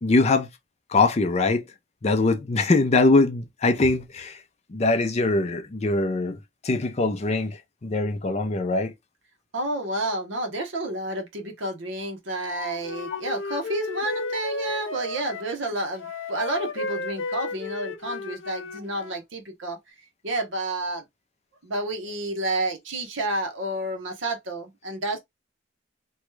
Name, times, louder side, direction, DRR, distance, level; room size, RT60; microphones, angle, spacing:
voice 1, 0.0-0.5 0.9-1.6 2.0-4.4 4.7-6.4 6.6-8.9, left 3 dB, 35° left, 0.4 m, -22 dB
voice 2, 9.5-21.0 21.6-25.2, right 2 dB, 65° right, 1.0 m, -30 dB
Wind instrument woodwind instrument, 12.4-15.5 16.0-19.2, left 3 dB, 70° left, 0.8 m, -34 dB
3.1 x 2.3 x 3.1 m
head